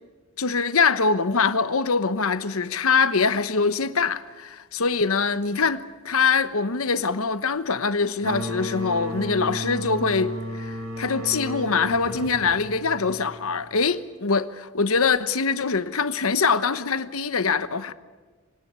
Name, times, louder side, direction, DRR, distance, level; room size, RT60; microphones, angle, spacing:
voice 1, 0.4-17.9, left 5 dB, 80° left, 1.1 m, -23 dB
sound 1, 8.2-13.7, equal, 80° right, 3.3 m, -33 dB
sound 2, 11.7-12.9, right 1 dB, 5° right, 5.8 m, -46 dB
24.5 x 20.0 x 8.3 m
head